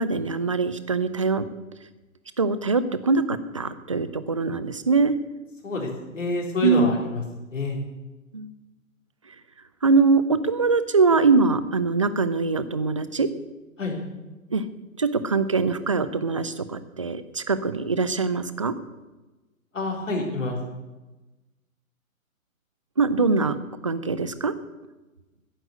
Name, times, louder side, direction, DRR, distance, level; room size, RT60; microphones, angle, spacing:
voice 1, 0.0-1.5 2.4-5.1 6.6-6.9 8.3-8.5 9.8-13.3 14.5-14.6 15.0-18.7 23.0-24.5, right 4 dB, 25° right, 14 dB, 0.4 m, -23 dB
voice 2, 5.6-7.2 7.5-7.8 13.8-14.0 19.7-20.6, left 2 dB, 60° left, 0 dB, 3.8 m, -27 dB
10.5 x 10.0 x 8.2 m, 1.1 s
figure-of-eight pair, 125°, 42 cm